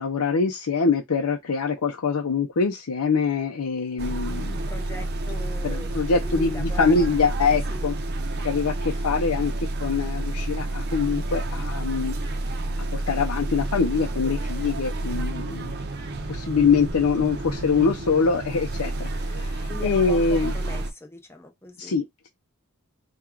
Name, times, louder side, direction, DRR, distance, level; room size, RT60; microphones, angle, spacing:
voice 1, 0.0-4.6 5.6-7.9 8.4-9.5 9.8-12.1 12.9-15.7 16.3-20.5 21.8-22.3, left 5 dB, 75° left, 0.6 m, -24 dB
sound 1, 4.0-20.9, right 2 dB, 45° right, 0.6 m, -29 dB
voice 2, 4.5-5.9 6.2-7.1 7.7-7.9 19.7-22.0, left 2 dB, 10° left, 0.8 m, -40 dB
4.4 x 2.3 x 3.7 m
head